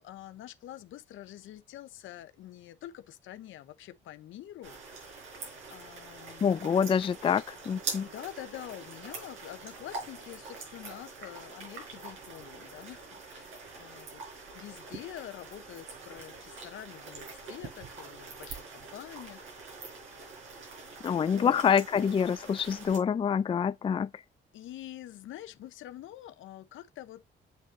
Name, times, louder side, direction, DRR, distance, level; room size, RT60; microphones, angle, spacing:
voice 1, 0.0-5.2 5.7-6.5 8.0-19.7 21.2-21.6 24.5-27.2, left 13 dB, 80° left, 0.8 m, -46 dB
sound 1, 4.6-23.0, right 4 dB, 85° right, 5.1 m, -44 dB
voice 2, 6.4-8.1 21.0-24.1, left 7 dB, 25° left, 0.4 m, -26 dB
8.3 x 6.4 x 2.6 m
cardioid pair, 90°, 20 cm